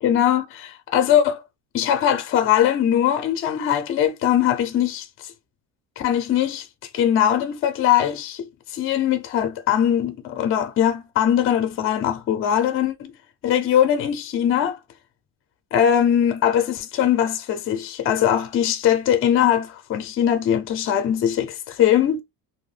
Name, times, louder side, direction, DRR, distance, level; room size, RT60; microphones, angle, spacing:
voice 1, 0.0-1.4 1.7-5.1 6.0-6.7 6.9-13.1 13.4-14.8 15.7-22.2, left 10 dB, 35° left, 0.5 m, -21 dB
2.7 x 2.1 x 3.2 m
cardioid pair, 140°, 40 cm